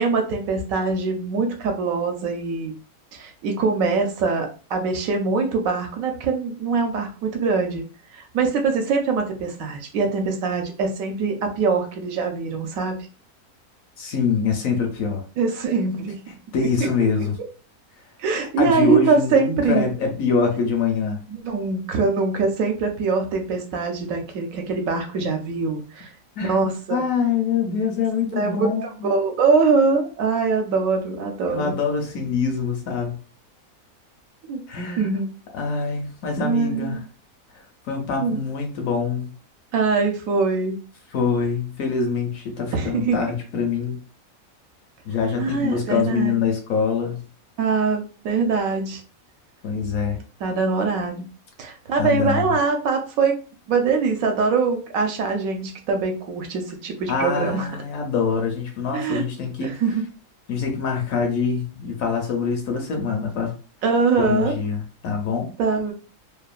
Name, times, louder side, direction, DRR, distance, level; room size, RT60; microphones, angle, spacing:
voice 1, 0.0-2.7 3.1-7.8 8.1-13.0 15.4-16.3 16.8-16.9 18.2-19.8 21.3-26.1 26.4-27.0 28.3-31.8 34.4-34.6 35.0-35.3 36.4-37.0 38.2-38.4 39.7-40.8 42.7-43.2 45.4-46.4 47.6-49.0 50.4-51.3 51.6-53.3 53.7-57.7 58.9-59.3 59.6-60.0 63.8-64.5 65.6-65.9, right 4 dB, 70° right, 0.9 m, -23 dB
voice 2, 14.0-15.2 16.5-17.3 18.6-21.2 26.4-26.6 26.9-29.1 31.5-33.2 34.7-35.1 35.5-37.0 37.9-39.3 41.1-44.0 45.0-47.2 49.6-50.2 52.0-52.4 57.1-59.7 60.5-63.6 64.2-65.5, left 5 dB, 70° left, 1.0 m, -24 dB
2.9 x 2.1 x 2.3 m
omnidirectional pair, 1.6 m